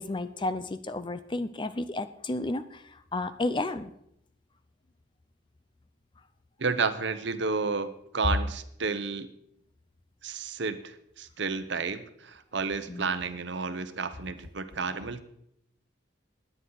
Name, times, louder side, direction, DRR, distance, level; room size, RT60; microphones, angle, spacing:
voice 1, 0.0-3.9 12.9-13.1, left 2 dB, 25° left, 12 dB, 0.5 m, -32 dB
voice 2, 6.6-9.3 10.2-15.2, right 4 dB, 60° right, 11 dB, 0.9 m, -31 dB
17.5 x 10.0 x 4.0 m, 0.75 s
head